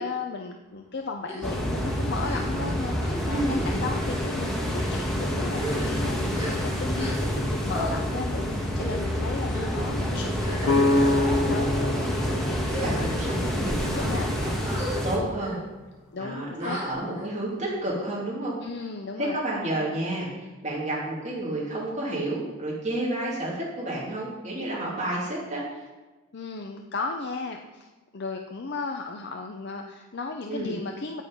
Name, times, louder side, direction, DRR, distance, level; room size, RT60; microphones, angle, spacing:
voice 1, 0.0-12.6 13.0-13.1 13.7-14.3 16.1-16.8 18.6-19.4 26.3-31.2, left 4 dB, 50° left, 3 dB, 0.6 m, -35 dB
sound 1, 1.2-1.5 2.1-2.7 3.0-3.3 4.0-4.2 4.9-5.1 5.5-7.4 7.7-7.9 8.7-9.1 9.5-9.8 10.4-11.2 11.9-12.1 12.6-13.3 13.9-14.2 14.6-15.0 15.4-15.6 16.6-17.2, right 1 dB, 15° right, 3.3 m, -37 dB
sound 2, 1.4-15.2, equal, ahead, 1.4 m, -28 dB
voice 2, 3.3-3.7 12.7-14.5 15.0-15.6 16.1-18.6 19.2-25.8 30.5-30.7, right 1 dB, 30° right, -6 dB, 2.5 m, -30 dB
sound 3, 10.6-14.5, left 2 dB, 85° left, 0.8 m, -26 dB
8.5 x 8.4 x 5.2 m, 1.2 s
head